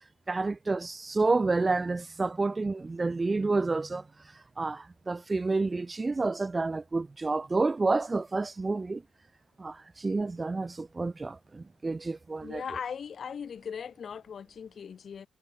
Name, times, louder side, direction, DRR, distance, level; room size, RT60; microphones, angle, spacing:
voice 1, 0.3-4.0 4.6-9.0 9.6-12.6, right 3 dB, 25° right, 0.4 m, -29 dB
voice 2, 12.4-15.3, left 7 dB, 50° left, 0.5 m, -39 dB
figure-of-eight pair, 45°, 0 cm